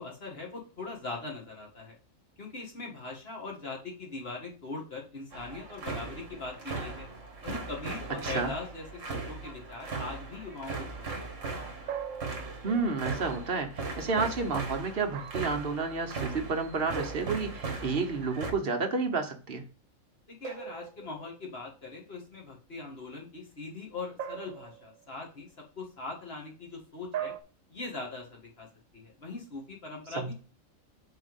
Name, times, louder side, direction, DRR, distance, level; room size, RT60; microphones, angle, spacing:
voice 1, 0.0-2.0 2.4-7.1 7.4-11.3 20.3-25.5 25.8-27.3 27.7-28.7 28.9-30.3, left 3 dB, 45° left, -1 dB, 2.1 m, -41 dB
sound 1, 5.3-18.5, right 3 dB, 65° right, 1.8 m, -38 dB
voice 2, 8.2-8.5 12.6-19.6 30.2-30.3, right 4 dB, 45° right, 4 dB, 1.2 m, -30 dB
sound 2, 11.9-12.9 15.1-15.6 17.0-17.8 20.4-21.6 24.2-25.1 27.1-27.4, right 9 dB, 85° right, 1.2 m, -40 dB
6.2 x 4.2 x 5.3 m, 0.37 s
omnidirectional pair, 1.4 m